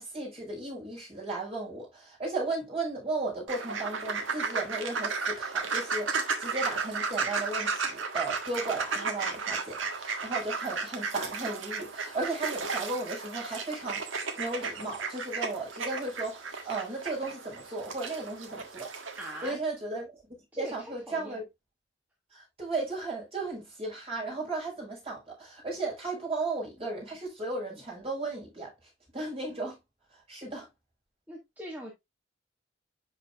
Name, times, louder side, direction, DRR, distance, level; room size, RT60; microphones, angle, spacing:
voice 1, 0.0-18.9 19.4-21.4 22.3-28.7 29.1-29.8 30.1-30.7, right 2 dB, 30° right, 5.2 m, -35 dB
sound 1, 3.5-19.5, right 4 dB, 85° right, 1.5 m, -34 dB
voice 2, 19.2-19.6 20.5-21.4 31.3-31.9, equal, 10° right, 1.5 m, -41 dB
10.5 x 4.6 x 2.4 m
head